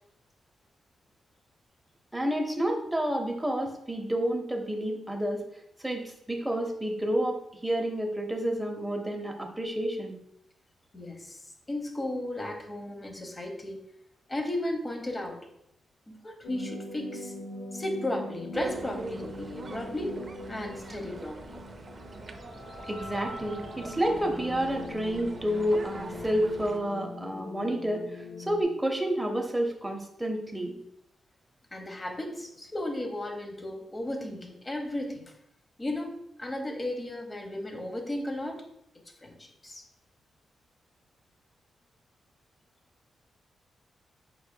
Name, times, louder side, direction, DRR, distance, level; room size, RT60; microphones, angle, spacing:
voice 1, 2.1-5.4 5.8-10.2 22.9-30.7, right 1 dB, 10° right, 3 dB, 0.8 m, -30 dB
voice 2, 10.9-11.4 11.7-13.8 14.3-15.5 16.1-17.3 17.7-20.2 20.5-21.6 31.7-35.2 35.8-38.6 39.2-39.8, left 1 dB, 25° left, 4 dB, 0.8 m, -35 dB
sound 1, 16.4-28.6, left 2 dB, 85° left, 0.6 m, -42 dB
sound 2, 18.5-26.8, right 3 dB, 40° right, 0.4 m, -43 dB
sound 3, 21.1-26.3, equal, 90° right, 1.5 m, -47 dB
4.5 x 4.3 x 2.2 m, 0.74 s
cardioid pair, 80°, 0 cm